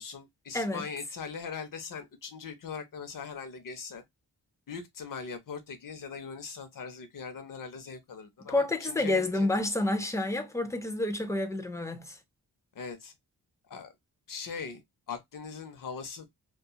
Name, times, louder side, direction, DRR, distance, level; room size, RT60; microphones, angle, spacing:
voice 1, 0.0-4.0 4.7-9.5 12.7-13.1 13.7-13.9 14.3-16.3, left 5 dB, 55° left, 0.6 m, -40 dB
voice 2, 8.5-12.2, left 2 dB, 10° left, 0.3 m, -29 dB
2.8 x 2.3 x 2.2 m
wide cardioid pair, 145°, 39 cm